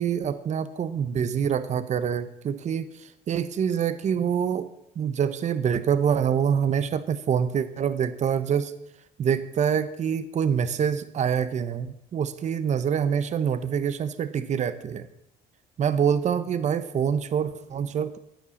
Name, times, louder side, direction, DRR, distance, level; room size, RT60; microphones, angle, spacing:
voice 1, 0.0-2.8 3.3-4.7 5.0-8.7 9.2-15.1 15.8-18.2, right 8 dB, 45° right, 12 dB, 0.9 m, -25 dB
14.5 x 9.8 x 7.1 m, 0.82 s
cardioid pair, 110°, 17 cm